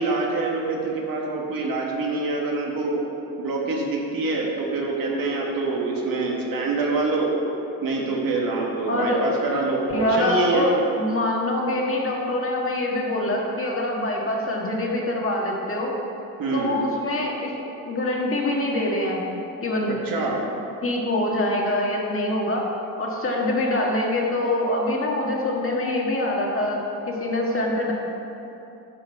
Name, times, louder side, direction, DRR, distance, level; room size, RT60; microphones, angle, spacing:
voice 1, 0.0-3.0 3.4-7.3 7.8-10.7 16.4-16.7 19.9-20.4, right 3 dB, 65° right, -1 dB, 1.7 m, -25 dB
voice 2, 8.9-9.2 9.9-16.0 16.5-17.6 17.9-19.9 20.8-22.7 23.0-27.9, left 1 dB, 35° left, -2 dB, 1.7 m, -24 dB
10.5 x 5.5 x 4.6 m, 2.9 s
cardioid pair, 75°, 37 cm